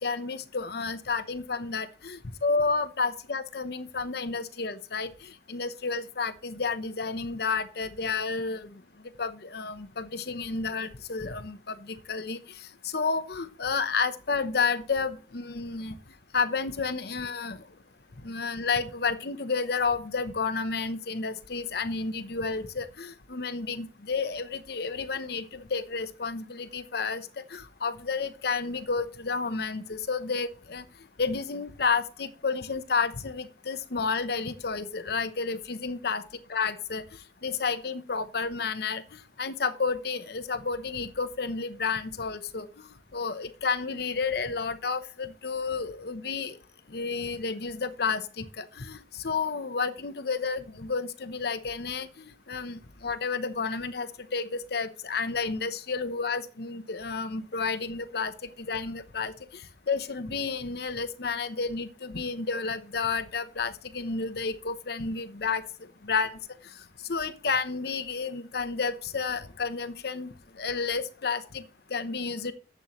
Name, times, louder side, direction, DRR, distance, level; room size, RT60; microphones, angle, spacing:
voice 1, 0.0-2.2 2.4-8.8 9.2-12.4 12.8-16.0 16.3-17.6 18.2-30.8 31.2-36.2 36.5-37.0 37.4-39.0 39.4-46.6 46.9-59.6 59.9-65.6 66.0-66.3 67.1-71.6 71.9-72.5, left 4 dB, 60° left, 11 dB, 0.9 m, -31 dB
11.0 x 8.0 x 3.1 m, 0.37 s
head